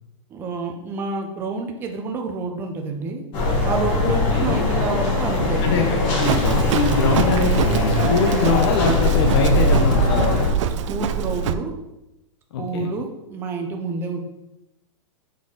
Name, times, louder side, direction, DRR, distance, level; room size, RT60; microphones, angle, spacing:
voice 1, 0.3-3.2 3.6-5.8 10.9-11.7 12.6-14.2, right 3 dB, 15° right, 3 dB, 0.5 m, -28 dB
sound 1, 3.3-10.5, left 2 dB, 30° left, 1.4 m, -21 dB
voice 2, 4.0-4.7 5.6-10.3 12.5-12.9, left 5 dB, 55° left, 3 dB, 0.7 m, -23 dB
Livestock farm animals working animals, 6.2-11.5, right 8 dB, 65° right, 0.4 m, -24 dB
6.1 x 4.2 x 3.8 m, 0.94 s
supercardioid pair, 170°, 17 cm